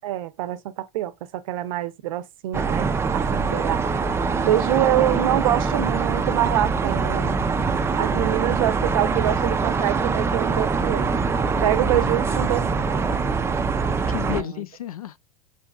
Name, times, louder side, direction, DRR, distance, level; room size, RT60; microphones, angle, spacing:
voice 1, 0.0-3.8 4.4-7.3 7.9-11.1 11.3-12.6 14.3-14.6, right 13 dB, 70° right, 0.6 m, -25 dB
sound 1, 2.5-14.4, right 4 dB, 15° right, 0.4 m, -23 dB
voice 2, 3.3-3.7 11.9-13.7 14.1-15.2, left 13 dB, 90° left, 0.4 m, -35 dB
4.5 x 2.6 x 2.3 m
hypercardioid pair, 90°, 18 cm